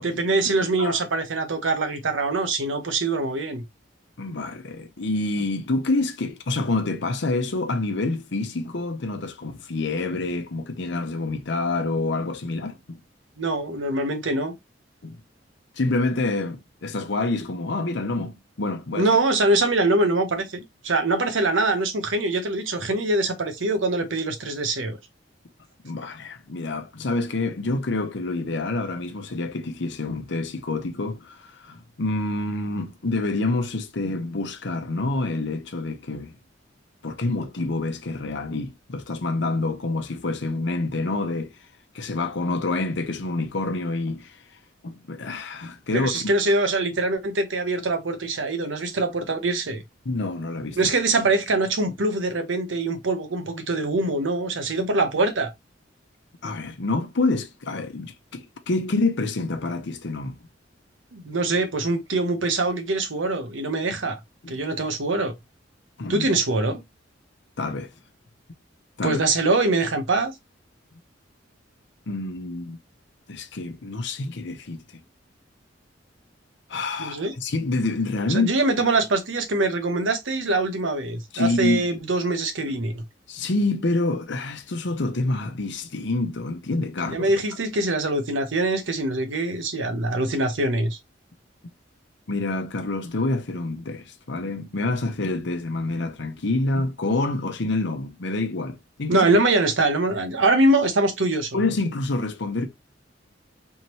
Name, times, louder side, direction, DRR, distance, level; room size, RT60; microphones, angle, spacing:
voice 1, 0.0-3.6 13.4-14.5 18.9-25.0 45.9-49.8 50.8-55.5 61.1-64.2 64.5-65.3 66.1-66.8 69.0-70.3 77.0-77.3 78.3-83.0 87.1-91.0 99.1-101.6, right 2 dB, 90° right, 0.9 m, -23 dB
voice 2, 4.2-13.0 15.0-15.2 15.8-19.1 25.8-36.3 37.0-41.5 41.9-44.3 44.8-46.3 50.0-50.8 56.4-60.4 64.4-64.6 66.0-66.3 67.6-67.9 69.0-69.2 72.1-72.8 73.3-74.8 76.7-78.5 81.3-81.9 83.3-87.3 92.3-99.3 101.5-102.7, left 2 dB, 65° left, 0.8 m, -27 dB
3.6 x 3.0 x 3.0 m
head